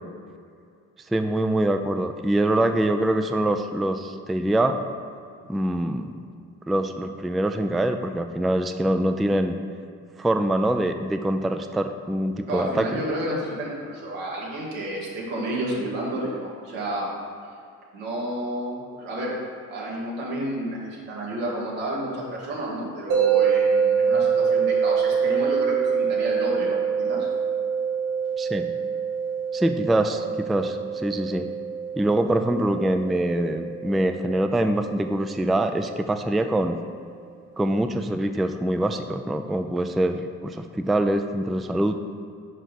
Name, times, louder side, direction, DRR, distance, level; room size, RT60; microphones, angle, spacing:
voice 1, 1.1-4.8 5.5-6.2 6.7-9.6 10.2-13.0 28.4-28.7 29.5-31.5 32.0-36.8 37.6-41.9, right 1 dB, ahead, 7 dB, 0.3 m, -24 dB
voice 2, 12.5-17.1 17.9-19.4 19.7-27.3, right 1 dB, 90° right, -5 dB, 1.8 m, -30 dB
sound 1, 23.1-36.2, right 7 dB, 75° right, 1.8 m, -25 dB
5.4 x 5.0 x 5.9 m, 2.4 s
hypercardioid pair, 55°, 39 cm